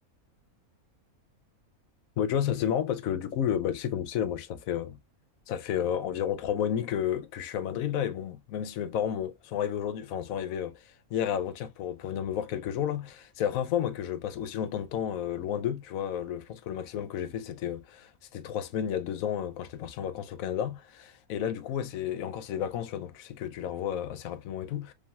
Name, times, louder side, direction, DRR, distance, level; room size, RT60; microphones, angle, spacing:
voice 1, 2.2-5.0 5.5-24.9, left 9 dB, 70° left, 1.0 m, -32 dB
5.1 x 3.5 x 2.3 m
omnidirectional pair, 1.6 m